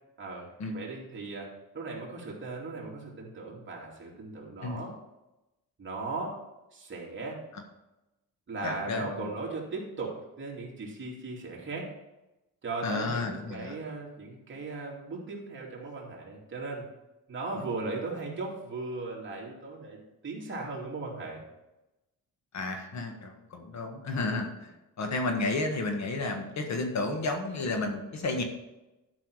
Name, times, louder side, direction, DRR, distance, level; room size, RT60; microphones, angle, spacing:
voice 1, 0.2-4.9 5.8-6.4 6.7-7.4 8.5-11.9 12.6-16.9 17.3-21.4, right 3 dB, 35° right, -3 dB, 2.7 m, -37 dB
voice 2, 8.6-9.3 12.8-13.8 22.5-24.7 25.0-28.4, left 2 dB, 55° left, 4 dB, 1.6 m, -32 dB
12.0 x 5.9 x 4.8 m, 0.99 s
cardioid pair, 140°, 33 cm